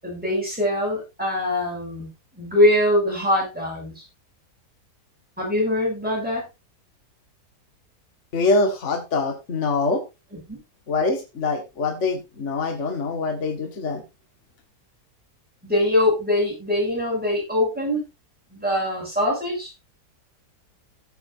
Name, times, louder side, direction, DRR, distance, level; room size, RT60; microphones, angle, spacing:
voice 1, 0.0-2.1 2.3-4.0 5.4-6.4 10.3-10.6 15.6-18.0 18.5-19.7, left 1 dB, 5° right, -3 dB, 6.7 m, -23 dB
voice 2, 8.3-10.0 10.9-14.0, left 3 dB, 45° left, 4 dB, 2.0 m, -24 dB
16.5 x 8.0 x 2.6 m, 0.23 s
omnidirectional pair, 1.8 m